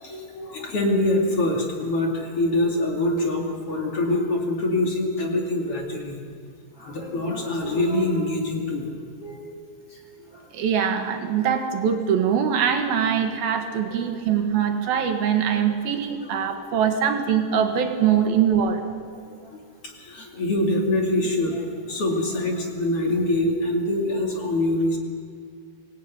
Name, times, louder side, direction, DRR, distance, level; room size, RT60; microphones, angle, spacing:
voice 1, 0.0-6.2 6.8-8.9 9.2-9.5 10.2-10.5 11.4-11.5 13.6-14.0 16.1-16.2 19.1-25.0, left 1 dB, 40° left, 0 dB, 3.1 m, -25 dB
voice 2, 10.5-18.8, right 8 dB, 70° right, 5 dB, 3.3 m, -22 dB
24.5 x 18.5 x 9.6 m, 2.1 s
omnidirectional pair, 4.6 m